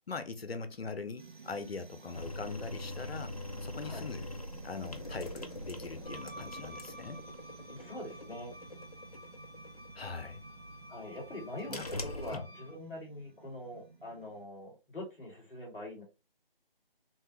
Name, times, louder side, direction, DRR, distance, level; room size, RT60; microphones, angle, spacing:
voice 1, 0.1-3.3 3.6-4.3 4.6-7.2 10.0-10.4 11.7-11.9 12.3-12.4, left 4 dB, 90° left, 0.6 m, -41 dB
sound 1, 1.2-14.5, right 4 dB, 55° right, 0.8 m, -54 dB
sound 2, 2.1-12.4, left 1 dB, 40° left, 0.4 m, -44 dB
Wind instrument woodwind instrument, 6.0-12.8, equal, 20° right, 1.2 m, -52 dB
voice 2, 7.7-8.5 10.9-16.0, left 1 dB, ahead, 1.0 m, -44 dB
3.1 x 2.2 x 2.9 m
figure-of-eight pair, 160°, 29 cm